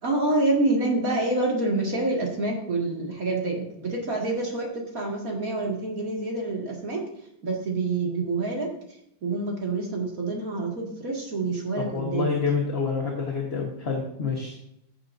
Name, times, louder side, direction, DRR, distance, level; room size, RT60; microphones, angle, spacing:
voice 1, 0.0-7.0 7.4-8.7 9.2-12.3, right 2 dB, 45° right, -1 dB, 2.5 m, -27 dB
voice 2, 11.8-14.6, left 5 dB, 35° left, -1 dB, 1.4 m, -27 dB
15.0 x 7.2 x 2.7 m, 0.76 s
omnidirectional pair, 2.1 m